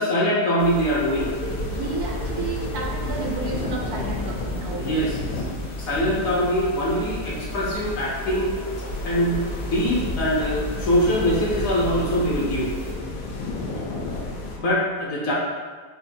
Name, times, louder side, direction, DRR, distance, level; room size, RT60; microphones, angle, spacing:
voice 1, 0.0-1.3 4.8-5.2 5.8-8.5 9.0-12.7 14.6-15.3, equal, 60° left, -5 dB, 1.1 m, -23 dB
sound 1, 0.6-12.9, equal, 45° left, 0.5 m, -36 dB
sound 2, 1.2-14.6, left 2 dB, 85° left, 1.2 m, -32 dB
voice 2, 1.7-5.5, right 4 dB, 70° right, -1 dB, 1.1 m, -32 dB
5.1 x 2.6 x 2.6 m, 1.5 s
omnidirectional pair, 1.8 m